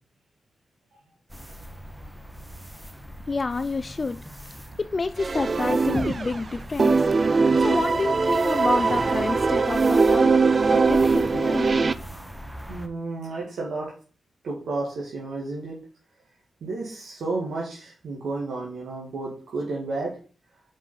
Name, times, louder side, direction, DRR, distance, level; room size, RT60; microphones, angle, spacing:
sound 1, 1.3-12.9, equal, 5° right, 1.3 m, -40 dB
voice 1, 3.3-4.4 4.8-7.1 7.6-10.4 10.7-11.9, left 3 dB, 45° left, 13 dB, 0.4 m, -29 dB
sound 2, 5.2-6.5 6.8-11.9, right 4 dB, 50° right, 0.4 m, -21 dB
voice 2, 12.7-13.9 14.4-15.8 16.6-20.2, right 3 dB, 80° right, -3 dB, 1.8 m, -32 dB
5.3 x 5.3 x 5.5 m, 0.40 s
cardioid pair, 50°, 0 cm